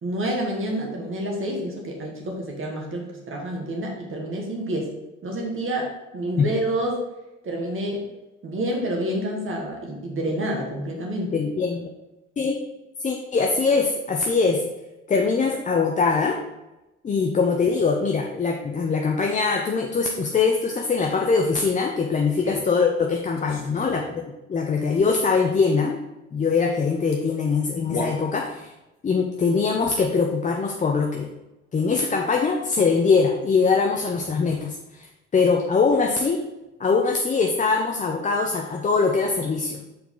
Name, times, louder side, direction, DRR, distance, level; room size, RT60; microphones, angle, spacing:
voice 1, 0.0-4.9 5.2-7.0 7.4-8.0 8.4-11.4 22.4-22.6, right 1 dB, 35° right, -1 dB, 1.9 m, -28 dB
voice 2, 11.3-11.9 12.4-12.6 13.0-14.7 15.1-16.4 17.0-24.2 24.5-26.0 26.3-28.7 29.0-31.3 31.7-35.1 35.3-36.4 36.8-39.9, left 4 dB, 20° left, 2 dB, 0.6 m, -22 dB
sound 1, 22.3-22.6 23.2-24.3 26.8-26.9 27.1-27.2 27.7-28.7, left 2 dB, 45° left, 1.4 m, -35 dB
6.5 x 4.5 x 3.8 m, 0.98 s
figure-of-eight pair, 55°, 36 cm